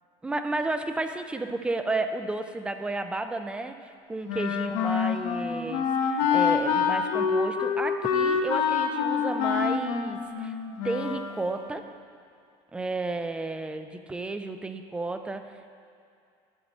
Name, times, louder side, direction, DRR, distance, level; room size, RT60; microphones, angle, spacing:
voice 1, 0.2-10.5 10.8-12.0 12.7-15.7, right 2 dB, 10° right, 8 dB, 0.3 m, -32 dB
Wind instrument woodwind instrument, 4.3-11.4, left 7 dB, 80° left, 0.8 m, -26 dB
11.5 x 4.1 x 7.1 m, 2.5 s
cardioid pair, 165°, 13 cm